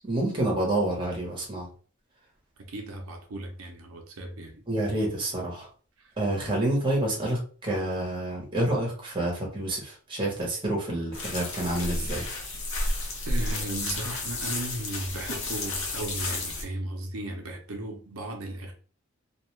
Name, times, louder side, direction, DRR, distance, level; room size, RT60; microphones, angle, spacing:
voice 1, 0.0-1.7 4.7-5.7 6.2-12.2, right 1 dB, 25° right, 0.9 m, -28 dB
voice 2, 2.6-4.6 6.0-6.1 13.3-18.7, right 1 dB, 85° right, 0.6 m, -36 dB
sound 1, 11.1-16.6, left 2 dB, 65° left, 0.8 m, -32 dB
2.4 x 2.3 x 3.1 m
head